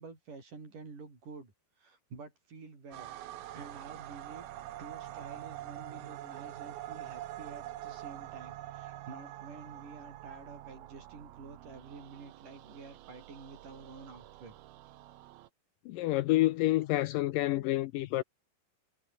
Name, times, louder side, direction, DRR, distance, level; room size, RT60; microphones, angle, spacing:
voice 1, 0.0-1.5 1.8-3.1 3.5-4.5 4.8-14.6 17.3-17.7, right 4 dB, 55° right, 8.0 m, -49 dB
sound 1, 2.9-15.5, right 14 dB, 80° right, 3.1 m, -46 dB
voice 2, 15.9-18.2, left 17 dB, 80° left, 2.1 m, -28 dB
omnidirectional pair, 4.4 m